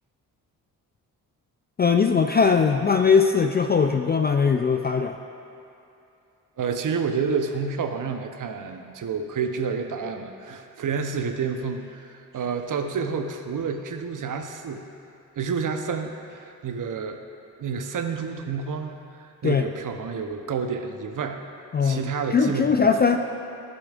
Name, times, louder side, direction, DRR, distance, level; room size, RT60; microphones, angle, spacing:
voice 1, 1.8-5.2 19.4-19.7 21.7-23.2, left 5 dB, 20° left, 6 dB, 0.4 m, -20 dB
voice 2, 6.6-14.9 15.4-17.2 17.6-21.4 21.8-23.1, right 5 dB, 40° right, 6 dB, 0.9 m, -29 dB
14.5 x 6.9 x 2.5 m, 2.8 s
hypercardioid pair, 45°, 47 cm